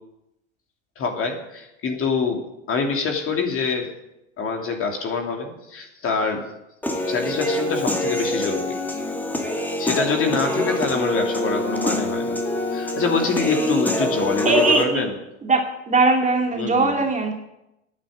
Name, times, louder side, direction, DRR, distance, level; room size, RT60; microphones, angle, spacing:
voice 1, 1.0-2.4 2.7-3.9 4.4-6.5 7.1-9.0 9.8-12.4 12.7-15.1 16.5-17.0, left 4 dB, 35° left, 3 dB, 2.9 m, -25 dB
Human voice / Piano, 6.8-14.8, left 1 dB, 5° left, 2.2 m, -25 dB
voice 2, 14.4-15.1 15.4-15.6 15.9-17.3, right 3 dB, 20° right, 2 dB, 2.4 m, -19 dB
10.5 x 9.2 x 8.7 m, 0.88 s
hypercardioid pair, 85°, 38 cm